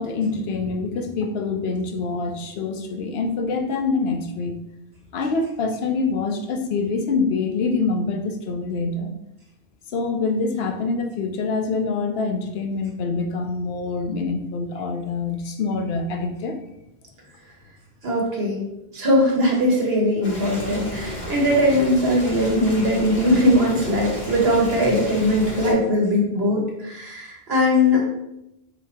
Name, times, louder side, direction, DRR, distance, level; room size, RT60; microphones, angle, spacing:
voice 1, 0.0-4.6 5.1-9.1 9.9-16.6, left 4 dB, 80° left, 5 dB, 0.8 m, -25 dB
voice 2, 18.0-18.7 18.9-28.0, left 1 dB, 75° right, -2 dB, 1.4 m, -20 dB
Boiling, 20.2-25.7, equal, 45° left, 1.7 m, -33 dB
4.1 x 2.7 x 4.2 m, 0.88 s
omnidirectional pair, 1.0 m